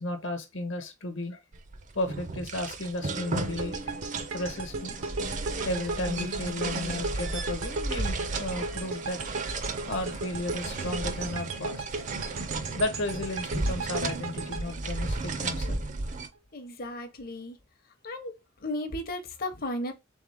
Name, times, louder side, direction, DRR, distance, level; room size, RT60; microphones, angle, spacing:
voice 1, 0.0-1.4 1.9-3.9 4.3-5.0 5.6-9.2 9.9-12.0 12.7-15.8, left 1 dB, 65° left, 1.0 m, -34 dB
sound 1, 1.5-16.3, right 3 dB, 40° right, 0.5 m, -34 dB
sound 2, 3.6-15.8, right 3 dB, 80° right, 0.8 m, -36 dB
voice 2, 16.5-17.5 18.0-18.3 18.6-19.9, left 1 dB, 45° left, 0.8 m, -34 dB
3.6 x 3.6 x 3.3 m
head